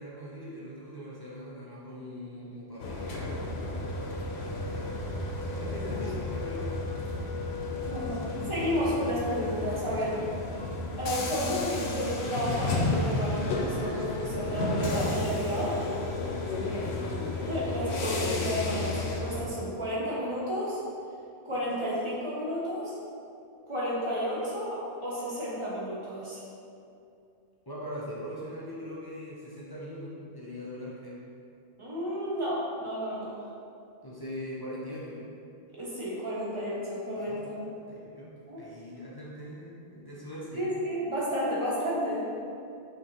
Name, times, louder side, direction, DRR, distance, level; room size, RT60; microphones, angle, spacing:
voice 1, 0.0-3.8 4.7-4.9 5.5-6.9 7.9-8.9 9.9-10.1 16.1-16.9 27.7-31.2 34.0-35.3 37.1-40.6, left 1 dB, 35° left, -7 dB, 0.4 m, -42 dB
sound 1, 2.8-19.4, left 2 dB, 75° left, 0.8 m, -32 dB
voice 2, 7.9-10.2 11.0-15.8 17.4-20.8 21.4-23.0 23.7-26.4 31.8-33.3 35.8-37.6 38.5-38.6 40.5-42.2, equal, 30° right, -7 dB, 1.0 m, -32 dB
5.4 x 2.9 x 2.8 m, 2.5 s
omnidirectional pair, 1.1 m